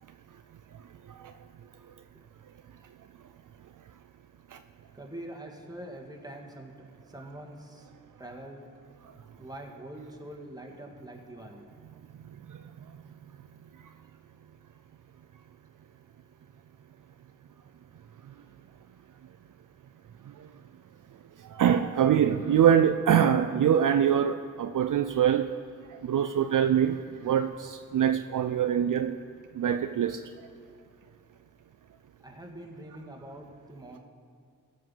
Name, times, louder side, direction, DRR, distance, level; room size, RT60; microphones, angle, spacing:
voice 1, 4.9-7.9 8.2-8.6 9.4-11.6 32.2-34.0, right 1 dB, 10° right, 2.0 m, -44 dB
voice 2, 21.6-25.5 26.0-27.0 27.2-29.2 29.6-30.2, right 9 dB, 65° right, 0.5 m, -24 dB
15.5 x 5.7 x 5.6 m
cardioid pair, 40°, 35 cm